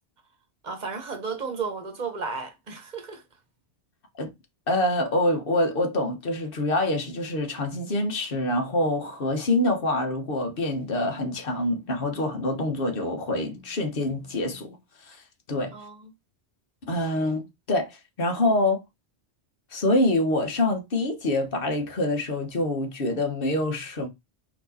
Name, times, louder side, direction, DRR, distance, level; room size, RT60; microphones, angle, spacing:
voice 1, 0.6-3.2 15.7-16.1, right 5 dB, 40° right, 1.1 m, -33 dB
voice 2, 4.7-14.8 15.0-15.2 15.5-15.7 16.9-18.8 19.7-24.1, left 1 dB, 55° left, 1.2 m, -26 dB
4.4 x 2.9 x 4.1 m
omnidirectional pair, 1.2 m